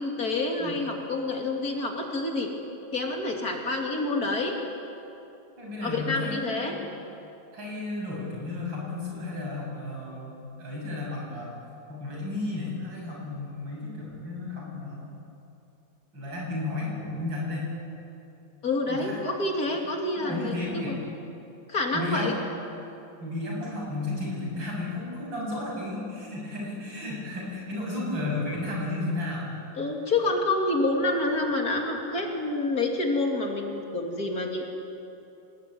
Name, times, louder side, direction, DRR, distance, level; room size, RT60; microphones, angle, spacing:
voice 1, 0.0-2.5 2.9-4.5 5.8-6.7 18.6-21.0 21.7-22.3 29.8-34.7, left 2 dB, 50° left, 1 dB, 3.3 m, -28 dB
voice 2, 5.6-6.9 7.5-11.5 11.9-15.1 16.1-17.7 18.9-19.2 20.2-21.0 21.9-22.5 23.2-29.6, left 2 dB, 75° right, -3 dB, 8.0 m, -33 dB
26.0 x 19.5 x 9.5 m, 2.8 s
omnidirectional pair, 2.1 m